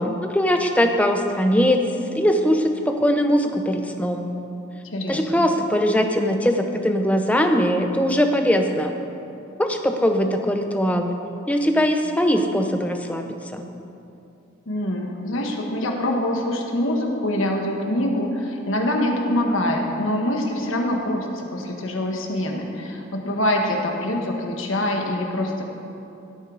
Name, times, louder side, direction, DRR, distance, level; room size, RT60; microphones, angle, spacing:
voice 1, 0.0-1.8 2.1-4.3 5.1-8.9 9.6-11.2 11.5-13.2 13.5-13.7, equal, 5° left, 5 dB, 0.6 m, -21 dB
voice 2, 4.9-5.5 14.7-25.6, left 1 dB, 75° left, 1 dB, 1.4 m, -24 dB
16.0 x 8.2 x 3.9 m, 2.8 s
head